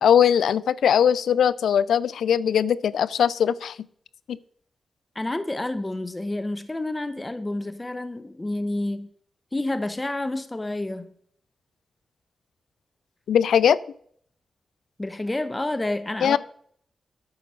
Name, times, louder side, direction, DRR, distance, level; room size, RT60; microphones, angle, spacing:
voice 1, 0.0-3.8 4.3-4.4 13.3-13.8 16.2-16.4, left 8 dB, 85° left, 19 dB, 0.3 m, -20 dB
voice 2, 5.1-9.1 9.5-11.1 15.0-16.4, left 2 dB, 25° left, 11 dB, 0.9 m, -29 dB
9.6 x 5.0 x 6.2 m, 0.62 s
cardioid pair, 50°, 0 cm